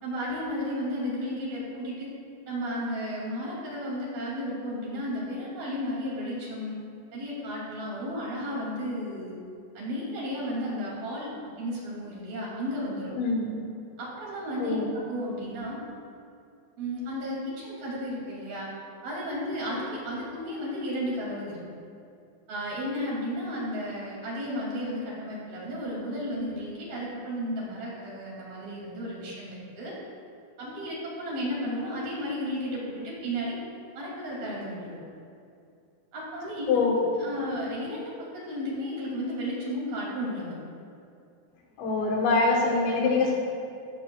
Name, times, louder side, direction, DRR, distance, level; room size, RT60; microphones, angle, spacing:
voice 1, 0.0-2.1 2.5-6.8 7.1-9.4 9.8-11.3 11.6-13.1 14.0-15.8 16.8-18.7 19.0-21.6 22.5-29.9 30.6-33.6 34.0-35.0 36.1-36.8 37.2-40.6, equal, 55° right, -6 dB, 4.1 m, -33 dB
voice 2, 13.2-13.6 14.6-14.9 36.7-37.0 41.8-43.3, left 3 dB, 75° left, -1 dB, 3.4 m, -24 dB
14.5 x 14.0 x 2.4 m, 2.4 s
omnidirectional pair, 5.5 m